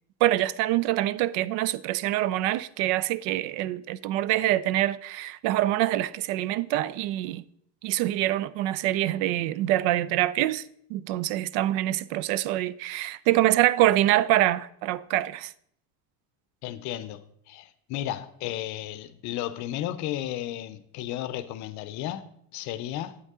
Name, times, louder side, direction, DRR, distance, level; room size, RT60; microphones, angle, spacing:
voice 1, 0.2-7.4 7.8-10.6 10.9-15.5, right 14 dB, 85° right, 0.5 m, -25 dB
voice 2, 16.6-23.2, left 12 dB, 50° left, 0.6 m, -34 dB
8.2 x 8.1 x 3.6 m
cardioid pair, 170°, 36 cm